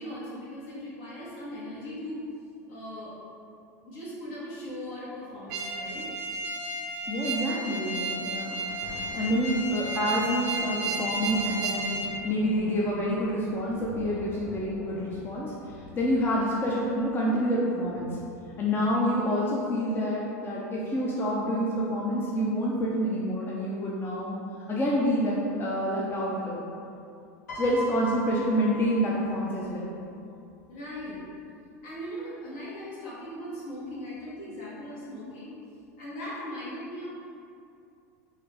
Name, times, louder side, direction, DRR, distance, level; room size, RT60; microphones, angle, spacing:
voice 1, 0.0-2.2 2.7-3.2 3.8-6.1 14.2-14.3 30.7-31.2 31.8-35.6 36.0-37.1, equal, 65° left, -8 dB, 1.5 m, -39 dB
sound 1, 5.5-12.1, right 2 dB, 60° right, 0.5 m, -33 dB
voice 2, 7.1-8.6 9.1-11.9 12.2-15.5 16.0-18.1 18.6-24.4 24.7-26.7 27.5-29.9, equal, 25° left, -5 dB, 0.5 m, -27 dB
Thunder, 8.3-19.3 20.0-20.1, left 1 dB, 45° left, 1.4 m, -46 dB
Piano, 27.5-29.8 30.9-31.1, left 1 dB, 90° left, 1.0 m, -39 dB
3.9 x 2.6 x 3.2 m, 2.5 s
hypercardioid pair, 110°, 9 cm